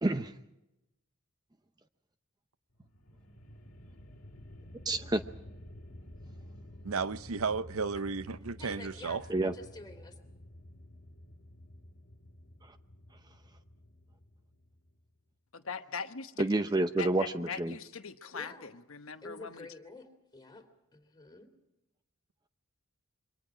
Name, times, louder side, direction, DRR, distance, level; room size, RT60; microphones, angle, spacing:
voice 1, 0.0-0.3 4.9-5.2 9.3-9.5 16.4-17.7, right 2 dB, 20° right, 0.7 m, -29 dB
sound 1, 2.7-15.1, left 1 dB, 85° left, 2.0 m, -51 dB
voice 2, 6.8-9.2, right 5 dB, 85° right, 0.7 m, -33 dB
voice 3, 8.6-10.2 18.3-18.7 19.2-20.7 20.9-21.5, left 2 dB, 20° left, 3.2 m, -49 dB
voice 4, 15.5-16.4 17.0-19.7, left 6 dB, 70° left, 1.1 m, -41 dB
27.5 x 24.5 x 5.0 m
head